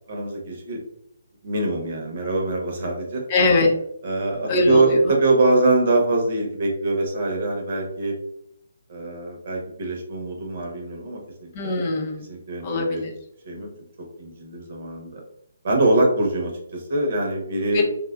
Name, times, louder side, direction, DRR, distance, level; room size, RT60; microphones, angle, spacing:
voice 1, 0.1-0.8 1.4-3.2 4.0-8.1 8.9-11.7 12.2-13.0 13.4-13.7 14.2-15.2 15.6-17.8, right 2 dB, 50° right, 0 dB, 0.8 m, -23 dB
voice 2, 3.3-3.7 4.5-5.1 11.5-12.2 12.6-13.1 17.7-17.8, left 2 dB, 30° left, 1 dB, 0.5 m, -21 dB
3.1 x 2.3 x 2.3 m, 0.74 s
figure-of-eight pair, 140°, 0 cm